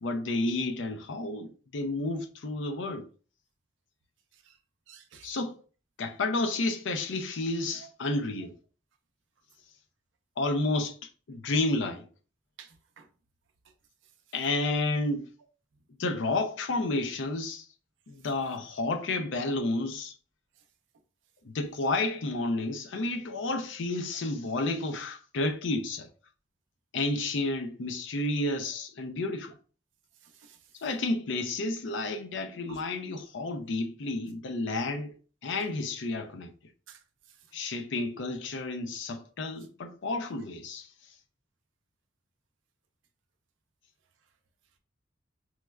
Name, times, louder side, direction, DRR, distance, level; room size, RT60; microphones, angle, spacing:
voice 1, 0.0-3.1 5.2-5.6 6.0-8.5 10.4-11.0 11.3-12.0 14.3-15.3 16.0-17.7 18.1-20.1 21.4-26.1 26.9-29.5 30.8-35.1 35.4-36.5 37.5-40.9, left 2 dB, 70° left, 0.5 m, -31 dB
voice 2, 4.9-5.4 12.6-13.1 30.2-30.6 32.7-32.8 36.9-37.0, right 5 dB, 70° right, 0.5 m, -51 dB
4.5 x 2.1 x 2.2 m
head